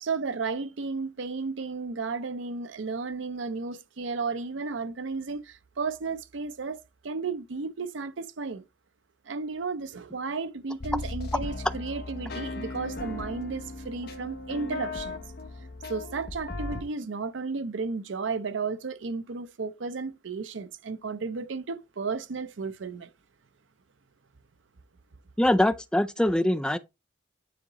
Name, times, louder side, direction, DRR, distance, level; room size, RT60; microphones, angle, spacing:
voice 1, 0.0-8.6 9.3-15.2 15.9-23.1, right 4 dB, 90° right, 0.6 m, -33 dB
sound 1, 10.8-16.8, left 2 dB, 55° left, 0.7 m, -37 dB
voice 2, 25.4-26.8, left 1 dB, 5° left, 0.3 m, -23 dB
9.4 x 3.9 x 2.9 m
head